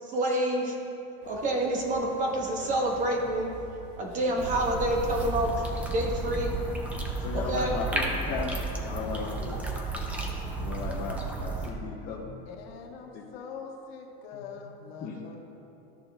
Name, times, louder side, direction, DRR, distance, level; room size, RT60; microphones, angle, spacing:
voice 1, 0.0-0.8 1.2-3.5 4.0-6.5 7.3-7.7, right 1 dB, 25° right, 0 dB, 1.0 m, -28 dB
sound 1, 1.2-6.9, right 1 dB, 85° right, 1.9 m, -49 dB
sound 2, 4.4-11.7, right 3 dB, 5° right, 0.3 m, -32 dB
voice 2, 7.2-8.5 8.9-9.6 10.4-12.4 13.1-13.2 14.3-15.4, left 5 dB, 25° left, -5 dB, 0.7 m, -37 dB
voice 3, 8.8-9.5 12.5-15.4, left 5 dB, 70° left, 0 dB, 1.3 m, -43 dB
13.5 x 6.6 x 2.3 m, 2.8 s
supercardioid pair, 170°, 31 cm